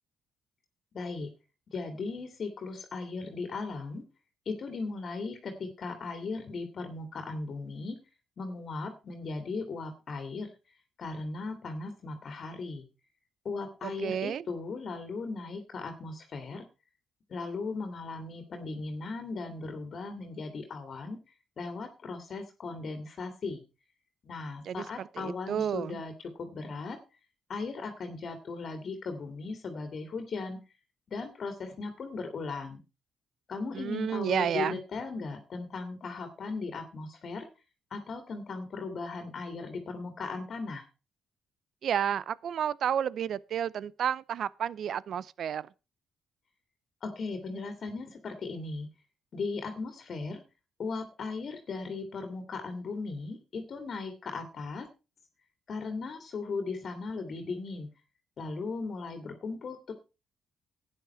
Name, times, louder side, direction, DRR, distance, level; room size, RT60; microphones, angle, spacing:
voice 1, 0.9-1.3 1.7-4.0 4.5-8.0 8.4-10.5 11.0-12.8 13.4-16.7 17.3-21.2 21.6-23.6 24.2-27.0 27.5-30.6 31.1-32.8 33.5-37.5 37.9-40.9 47.0-48.9 49.3-50.4 50.8-54.9 55.7-57.9 58.4-59.9, left 4 dB, 50° left, 2.3 m, -37 dB
voice 2, 13.8-14.5 24.7-26.0 33.7-34.8 41.8-45.7, right 9 dB, 65° right, 0.6 m, -31 dB
12.0 x 9.5 x 4.4 m
cardioid pair, 90°, 0 cm